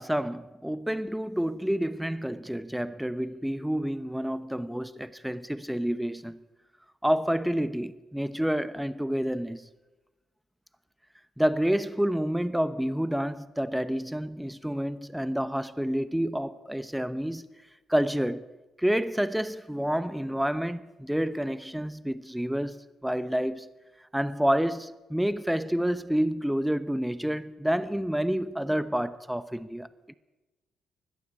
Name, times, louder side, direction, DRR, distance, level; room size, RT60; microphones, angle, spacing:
voice 1, 0.0-6.4 7.0-9.7 11.4-17.5 17.9-18.5 18.8-23.7 24.1-29.9, equal, 5° right, 0.8 m, -29 dB
21.0 x 15.0 x 8.6 m
cardioid pair, 90°, 0 cm